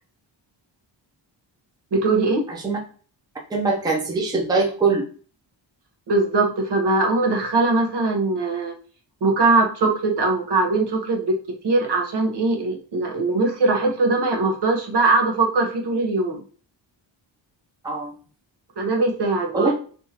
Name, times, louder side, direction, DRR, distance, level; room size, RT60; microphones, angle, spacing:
voice 1, 1.9-2.4 6.1-8.7 9.2-11.4 11.6-16.4 18.8-19.7, right 3 dB, 65° right, 1 dB, 1.0 m, -21 dB
voice 2, 3.5-5.1 17.8-18.1 19.5-19.7, right 3 dB, 10° right, 0 dB, 0.5 m, -22 dB
3.5 x 2.6 x 2.8 m, 0.40 s
wide cardioid pair, 170°, 45 cm